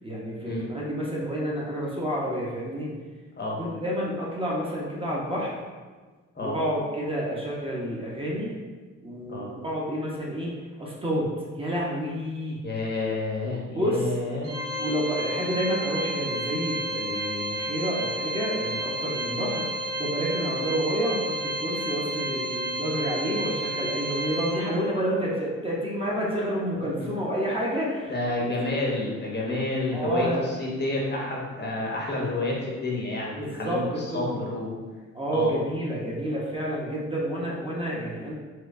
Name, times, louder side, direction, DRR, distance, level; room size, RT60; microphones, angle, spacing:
voice 1, 0.0-2.9 3.6-5.6 6.4-8.5 9.0-10.5 10.8-11.3 11.5-12.6 13.7-14.1 14.6-19.6 20.0-28.1 28.4-28.5 29.9-30.4 33.4-34.2 35.1-38.3, equal, 20° right, -5 dB, 0.7 m, -29 dB
voice 2, 12.6-14.5 19.3-19.5 27.0-27.1 28.1-34.8 35.3-35.5, left 2 dB, 35° left, -3 dB, 0.8 m, -29 dB
Organ, 14.4-25.1, equal, 85° right, 1.1 m, -31 dB
4.4 x 2.2 x 2.5 m, 1.4 s
cardioid pair, 90°, 30 cm